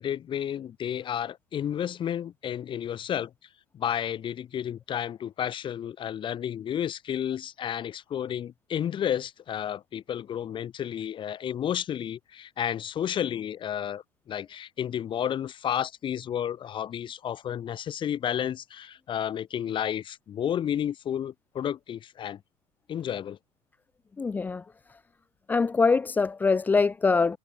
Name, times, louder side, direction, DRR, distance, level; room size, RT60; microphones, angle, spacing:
voice 1, 0.0-3.3 3.7-22.4 22.9-23.4, left 9 dB, 25° left, 4.7 m, -31 dB
voice 2, 24.2-24.6 25.5-27.4, left 4 dB, 10° left, 0.6 m, -23 dB
supercardioid pair, 155°, 20 cm